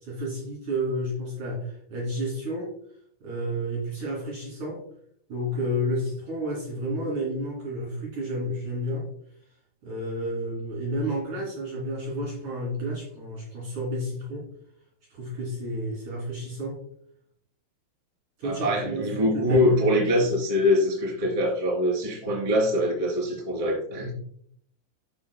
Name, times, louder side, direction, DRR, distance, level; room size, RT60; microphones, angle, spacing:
voice 1, 0.0-2.7 3.2-4.8 5.3-9.1 9.8-14.5 15.1-16.8 18.4-19.8, equal, 45° right, -4 dB, 3.3 m, -31 dB
voice 2, 18.4-24.1, left 1 dB, 10° right, -4 dB, 2.0 m, -24 dB
12.5 x 6.6 x 2.2 m, 0.66 s
omnidirectional pair, 5.9 m